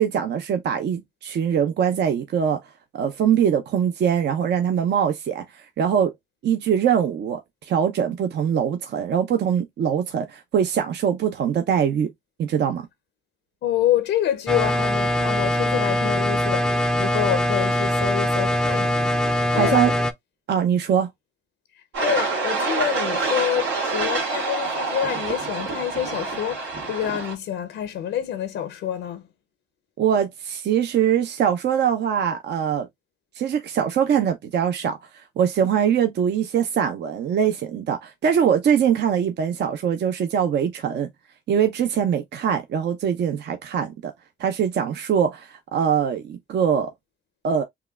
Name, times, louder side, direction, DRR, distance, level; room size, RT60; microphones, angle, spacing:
voice 1, 0.0-2.6 2.9-6.1 6.4-12.1 12.4-12.8 19.5-19.9 20.5-21.1 30.0-32.9 33.4-35.0 35.4-41.1 41.5-44.1 44.4-46.9 47.4-47.6, right 8 dB, 60° right, 0.6 m, -22 dB
voice 2, 13.6-20.0 22.0-29.2, left 10 dB, 75° left, 0.6 m, -27 dB
sound 1, 14.5-20.1, equal, 5° left, 0.4 m, -22 dB
sound 2, 21.9-27.3, right 4 dB, 80° right, 1.7 m, -27 dB
5.6 x 2.2 x 2.3 m
cardioid pair, 90°, 20 cm